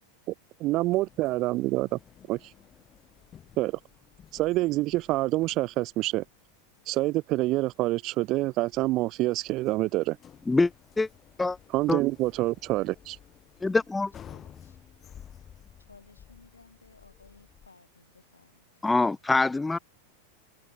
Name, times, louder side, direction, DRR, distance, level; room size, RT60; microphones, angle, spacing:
voice 1, 0.6-2.0 2.3-2.5 3.6-3.8 4.3-6.2 6.9-10.2 11.7-13.2, right 18 dB, 40° right, 1.4 m, -27 dB
sound 1, 0.7-17.7, left 9 dB, 25° left, 7.4 m, -54 dB
voice 2, 13.6-14.1 18.8-19.8, left 3 dB, 10° left, 0.4 m, -24 dB
voice 3, 14.3-14.8 15.8-18.7, left 3 dB, 80° left, 7.7 m, -57 dB
figure-of-eight pair, 90°, 0 cm